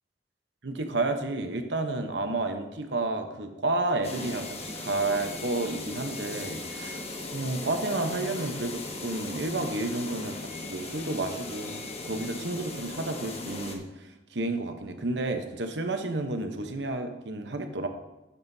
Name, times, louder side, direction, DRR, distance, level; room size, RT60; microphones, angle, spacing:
voice 1, 0.6-17.9, right 2 dB, 75° right, 6 dB, 0.9 m, -31 dB
sound 1, 4.0-13.8, left 2 dB, 35° left, 1.1 m, -38 dB
13.0 x 7.3 x 2.7 m, 1.0 s
head